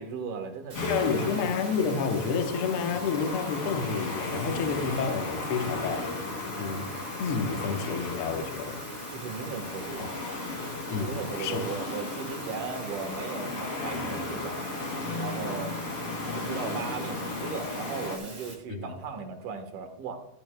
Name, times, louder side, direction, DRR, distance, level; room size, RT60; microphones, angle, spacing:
voice 1, 0.0-1.3 9.1-10.1 11.0-14.8 15.2-15.8 16.3-20.2, right 5 dB, 65° right, 2.6 m, -37 dB
sound 1, 0.7-18.2, left 3 dB, 45° left, 2.9 m, -35 dB
sound 2, 0.7-18.5, right 3 dB, 25° right, 2.7 m, -45 dB
voice 2, 0.8-6.2 6.6-6.9 7.2-8.8 10.0-10.1 10.9-11.6 18.7-18.9, left 5 dB, 75° left, 1.2 m, -30 dB
15.5 x 12.5 x 2.2 m
omnidirectional pair, 4.2 m